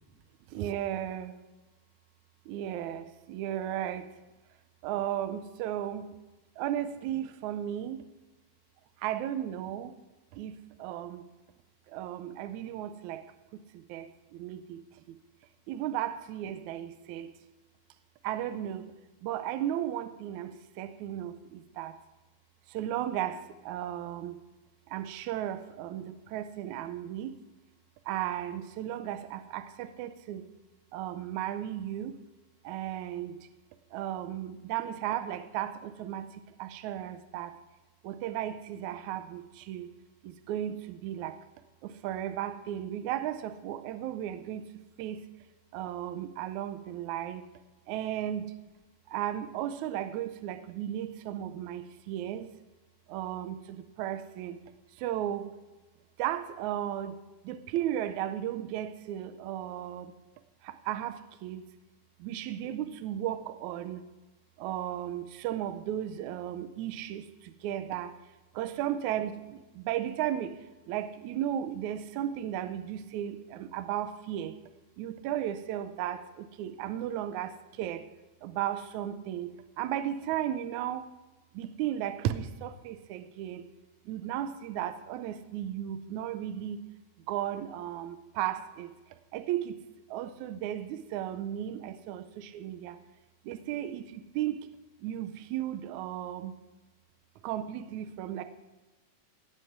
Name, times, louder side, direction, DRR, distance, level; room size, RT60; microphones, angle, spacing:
voice 1, 0.5-1.3 2.5-4.1 4.8-6.1 6.6-8.0 9.0-9.9 10.3-11.2 11.9-13.2 13.5-15.2 15.7-17.3 18.2-18.9 19.2-22.0 22.7-24.4 24.9-27.4 28.1-30.5 30.9-32.2 32.6-33.5 33.9-37.6 38.0-39.9 40.2-41.4 41.8-44.7 45.0-45.2 45.7-47.4 47.9-48.5 49.1-52.5 53.1-54.6 55.0-55.5 56.2-57.2 57.4-60.1 60.6-61.6 62.2-64.0 64.6-68.1 68.5-70.6 70.9-74.6 75.0-78.1 78.4-81.1 81.5-83.6 84.1-86.8 87.3-88.9 89.3-89.8 90.1-93.0 93.5-94.7 95.0-96.5 97.4-98.4, right 11 dB, 80° right, 10 dB, 2.0 m, -35 dB
17.5 x 7.8 x 6.0 m, 1.1 s
omnidirectional pair, 3.7 m